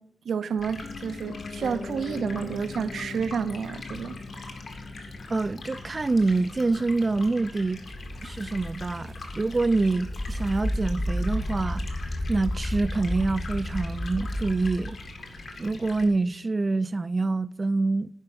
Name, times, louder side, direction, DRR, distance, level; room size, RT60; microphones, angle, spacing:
voice 1, 0.2-4.2, right 6 dB, 85° right, 0.6 m, -30 dB
Stream, 0.6-16.1, left 2 dB, 65° left, 2.1 m, -43 dB
Piano, 0.8-10.8 11.1-11.2, left 4 dB, 45° left, 0.4 m, -42 dB
voice 2, 5.3-7.8 8.2-15.0 15.6-18.1, right 3 dB, 30° right, 0.3 m, -26 dB
sound 1, 7.9-14.9, left 1 dB, 25° left, 0.9 m, -32 dB
10.5 x 5.2 x 8.3 m
wide cardioid pair, 125°, 0 cm